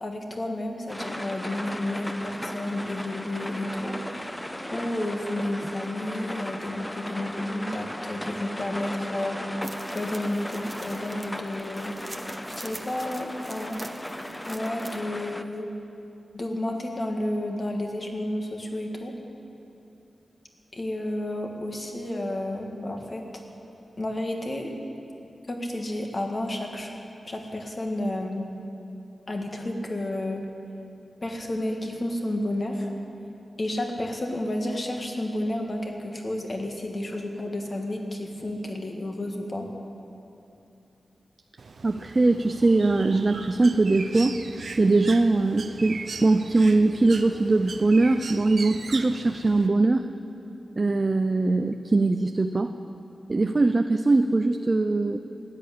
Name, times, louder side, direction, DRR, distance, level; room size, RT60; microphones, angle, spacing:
voice 1, 0.0-4.4 4.7-9.4 9.9-12.0 12.3-13.8 14.5-15.7 16.3-19.1 20.7-23.2 24.0-24.7 25.5-26.9 27.3-28.5 29.3-30.5 31.2-32.9 33.6-39.7, left 1 dB, 35° left, 2 dB, 1.9 m, -31 dB
sound 1, 0.9-15.4, left 1 dB, 10° left, 0.7 m, -36 dB
sound 2, 9.6-15.0, right 1 dB, 20° right, 1.0 m, -45 dB
Bird, 41.6-49.7, right 4 dB, 70° right, 0.8 m, -39 dB
voice 2, 41.8-44.3 44.8-50.1 50.8-52.7 53.3-55.2, right 2 dB, 35° right, 7 dB, 0.5 m, -21 dB
16.0 x 10.5 x 8.4 m, 2.8 s
wide cardioid pair, 105°, 0 cm